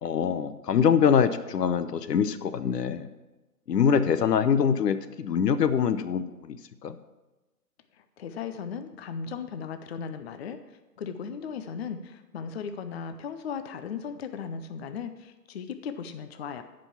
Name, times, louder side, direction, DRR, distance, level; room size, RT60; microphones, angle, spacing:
voice 1, 0.0-3.1 3.7-7.0, left 7 dB, 75° left, 12 dB, 0.9 m, -24 dB
voice 2, 7.9-16.6, left 6 dB, 40° left, 9 dB, 0.6 m, -37 dB
10.0 x 5.3 x 7.2 m, 1.1 s
hypercardioid pair, 145°, 48 cm